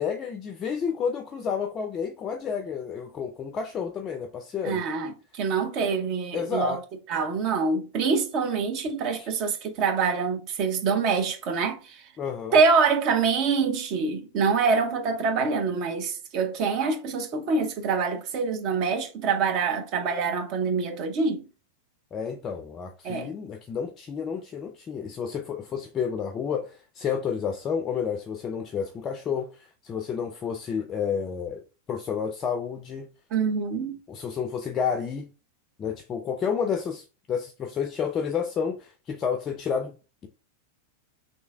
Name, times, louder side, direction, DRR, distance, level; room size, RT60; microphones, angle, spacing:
voice 1, 0.0-4.8 6.3-6.8 9.2-9.3 12.2-12.6 22.1-31.6 31.9-33.1 34.1-35.3 35.8-40.0, left 7 dB, 25° left, 0.4 m, -30 dB
voice 2, 4.6-6.8 7.1-12.0 12.5-21.4 23.0-23.3 33.3-34.0, right 5 dB, 40° right, 0.8 m, -25 dB
3.2 x 2.7 x 3.4 m
figure-of-eight pair, 90°, 0 cm